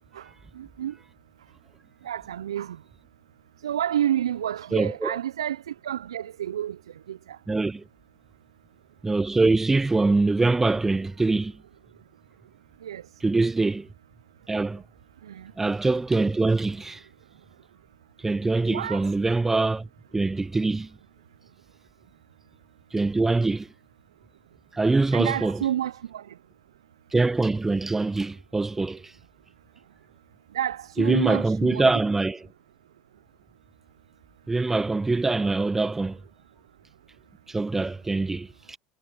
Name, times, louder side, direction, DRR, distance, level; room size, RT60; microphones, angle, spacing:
voice 1, 0.6-1.0 2.0-2.8 3.6-6.8 7.1-7.4 12.8-13.0 15.2-15.5 18.7-19.1 25.1-26.2 30.5-31.9, right 11 dB, 85° right, 0.3 m, -29 dB
voice 2, 4.7-5.2 7.5-7.8 9.0-11.6 13.2-13.9 14.5-14.8 15.6-17.0 18.2-19.9 20.1-20.9 22.9-23.7 24.7-25.6 27.1-29.1 31.0-32.4 34.5-36.2 37.5-38.8, right 3 dB, 15° right, 0.4 m, -24 dB
hypercardioid pair, 80°, 3 cm